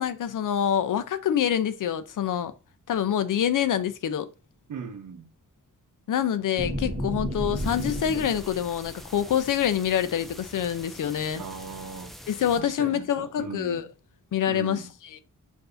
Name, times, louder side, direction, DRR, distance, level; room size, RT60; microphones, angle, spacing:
voice 1, 0.0-2.5 2.9-4.3 6.1-11.4 12.3-13.9 14.3-14.8 15.1-15.2, left 9 dB, 75° left, 0.5 m, -26 dB
voice 2, 4.7-5.3 11.3-12.1 12.6-13.9 14.5-14.9, right 5 dB, 70° right, 0.8 m, -38 dB
sound 1, 6.6-8.6 9.0-9.5, equal, 20° right, 1.0 m, -31 dB
sound 2, 7.5-12.6, equal, ahead, 0.4 m, -45 dB
6.7 x 2.7 x 2.6 m
wide cardioid pair, 175°, 32 cm